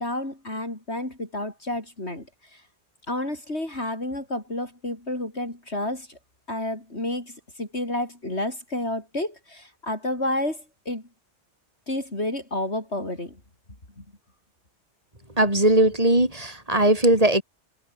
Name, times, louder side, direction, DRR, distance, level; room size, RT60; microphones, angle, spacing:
voice 1, 0.0-2.6 3.1-6.2 6.5-11.0 11.9-13.4 14.0-14.1, left 1 dB, 65° left, 6.6 m, -30 dB
voice 2, 15.4-17.4, right 1 dB, 30° right, 6.2 m, -19 dB
omnidirectional pair, 1.2 m